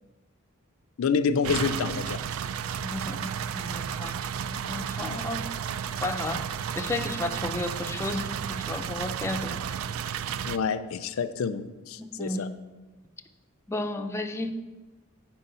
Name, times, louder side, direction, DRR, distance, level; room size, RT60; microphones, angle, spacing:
voice 1, 1.0-2.2 5.0-5.2 10.5-12.5, left 5 dB, 75° left, 10 dB, 0.4 m, -28 dB
sound 1, 1.4-10.6, right 8 dB, 75° right, 0.3 m, -33 dB
voice 2, 2.8-4.2 4.5-5.5 6.0-6.5 6.8-9.7 12.0-12.5 13.7-14.5, left 2 dB, 15° left, 3 dB, 0.4 m, -33 dB
8.9 x 4.6 x 5.5 m, 1.2 s
head